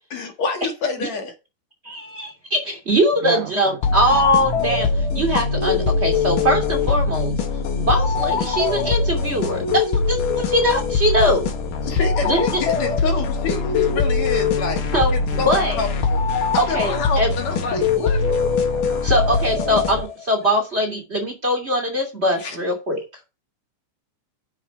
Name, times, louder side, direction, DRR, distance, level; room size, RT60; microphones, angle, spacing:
voice 1, 0.1-1.3 11.8-18.2 22.4-22.6, left 4 dB, 60° left, 3.3 m, -27 dB
voice 2, 1.8-4.9 5.1-7.3 7.8-11.5 12.2-12.6 14.9-15.8 16.6-17.3 19.0-23.0, equal, 20° right, 2.7 m, -21 dB
sound 1, 3.8-20.3, left 4 dB, 85° left, 3.3 m, -22 dB
voice 3, 17.7-19.4, right 8 dB, 65° right, 2.0 m, -32 dB
9.8 x 7.2 x 4.7 m
omnidirectional pair, 3.6 m